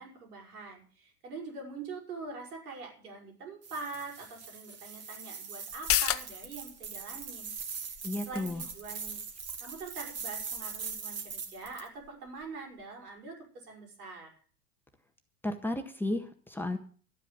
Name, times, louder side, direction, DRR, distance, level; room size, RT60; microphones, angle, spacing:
voice 1, 0.0-7.9 8.2-9.2 9.6-14.3, right 4 dB, 75° right, 2 dB, 6.0 m, -44 dB
sound 1, 3.6-11.9, right 6 dB, 35° right, 2.6 m, -41 dB
sound 2, 5.7-12.8 13.2-13.3, left 12 dB, 30° left, 1.0 m, -38 dB
voice 2, 8.0-8.6 15.4-16.8, left 1 dB, 5° left, 5 dB, 1.6 m, -33 dB
12.5 x 9.2 x 8.4 m, 0.43 s
hypercardioid pair, 90°, 45 cm